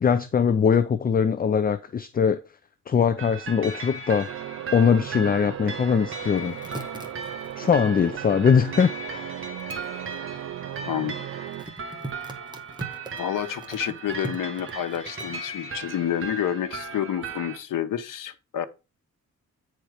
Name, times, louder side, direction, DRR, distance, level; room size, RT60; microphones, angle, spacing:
voice 1, 0.0-2.4 2.9-4.3 4.7-6.6 7.6-9.4, left 6 dB, 30° left, 0.4 m, -21 dB
sound 1, 3.2-17.6, right 3 dB, 40° right, 1.4 m, -37 dB
sound 2, 4.3-11.6, right 12 dB, 60° right, 0.4 m, -37 dB
sound 3, 6.3-8.7 9.6-9.9 11.5-15.4, right 2 dB, 15° right, 1.2 m, -40 dB
voice 2, 10.9-11.2 13.2-18.7, left 10 dB, 80° left, 1.0 m, -29 dB
9.2 x 4.3 x 4.9 m
wide cardioid pair, 165°, 32 cm